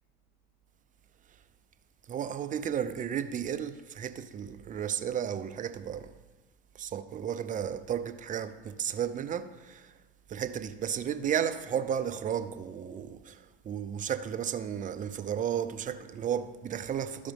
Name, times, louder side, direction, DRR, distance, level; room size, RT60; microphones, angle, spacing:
voice 1, 2.1-6.1 6.7-9.9 10.3-17.3, right 9 dB, 25° right, 0.6 m, -33 dB
13.0 x 5.0 x 3.5 m
hypercardioid pair, 100°, 30 cm